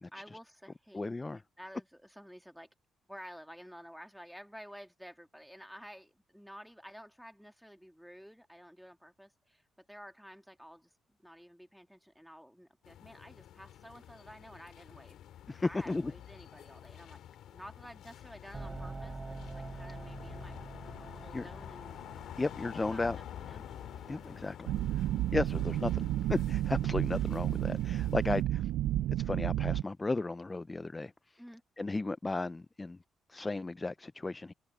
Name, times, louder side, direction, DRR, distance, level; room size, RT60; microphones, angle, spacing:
voice 1, 0.1-1.0 1.6-2.7 3.1-10.9 11.2-15.2 15.6-17.2 17.5-20.6 21.0-22.0 22.3-23.7 28.5-28.6 31.4-31.6, equal, ahead, 2.3 m, -52 dB
voice 2, 0.9-1.4 15.5-16.1 21.3-21.4 22.4-23.2 24.1-28.7 29.1-31.4 31.8-33.0 33.3-34.5, left 3 dB, 20° left, 0.5 m, -35 dB
sound 1, 12.8-28.4, left 11 dB, 75° left, 3.2 m, -49 dB
sound 2, 18.5-24.5, right 3 dB, 25° right, 5.1 m, -46 dB
sound 3, 24.7-29.8, right 13 dB, 85° right, 0.5 m, -31 dB
open air
cardioid pair, 90°, 0 cm